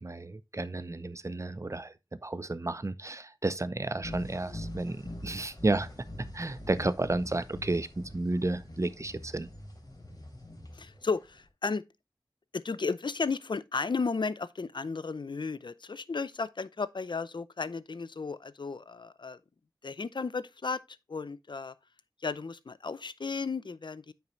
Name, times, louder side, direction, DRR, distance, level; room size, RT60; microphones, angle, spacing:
voice 1, 0.0-1.9 2.2-5.9 6.3-9.5, right 2 dB, 40° right, 0.7 m, -32 dB
sound 1, 4.0-11.4, left 1 dB, 55° left, 3.4 m, -44 dB
voice 2, 10.8-11.8 12.5-19.4 19.8-20.8 21.1-21.7 22.2-24.1, left 4 dB, 80° left, 0.5 m, -34 dB
9.2 x 5.9 x 3.1 m
wide cardioid pair, 60°, 8 cm